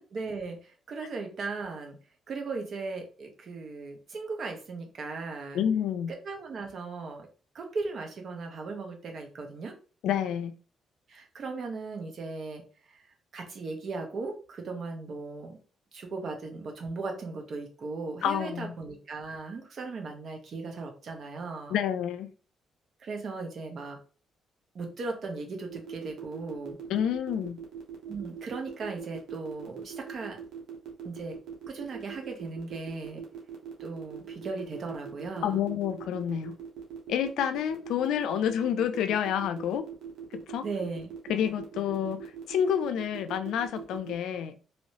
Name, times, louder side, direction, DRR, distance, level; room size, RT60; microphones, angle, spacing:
voice 1, 0.1-2.0 2.3-5.6 6.1-7.3 7.5-9.7 11.1-12.6 12.9-13.0 13.3-15.6 15.9-21.8 23.0-24.0 24.7-26.8 28.1-30.4 31.0-31.4 31.7-33.2 33.8-35.7 40.6-41.1, right 3 dB, 55° right, 3 dB, 1.0 m, -37 dB
voice 2, 5.5-6.1 10.0-10.5 18.2-18.7 21.7-22.3 26.9-27.6 35.4-36.6 37.1-39.8 40.3-40.6 41.3-42.2 42.5-44.6, left 9 dB, 85° left, 11 dB, 0.4 m, -28 dB
sound 1, 25.7-44.1, right 8 dB, 80° right, 1.1 m, -41 dB
3.0 x 2.7 x 3.1 m, 0.38 s
cardioid pair, 90°, 0 cm